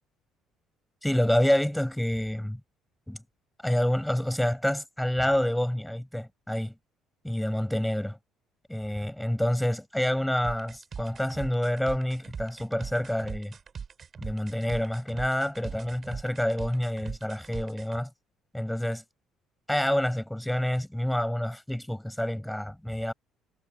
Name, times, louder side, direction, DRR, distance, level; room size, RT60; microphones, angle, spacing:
voice 1, 1.0-2.6 3.1-3.2 3.6-6.7 7.2-8.2 8.7-13.6 14.2-18.1 18.5-19.0 19.7-23.1, left 1 dB, ahead, 5.7 m, -28 dB
sound 1, 10.4-18.0, right 6 dB, 25° right, 4.2 m, -40 dB
cardioid pair, 175°, 0 cm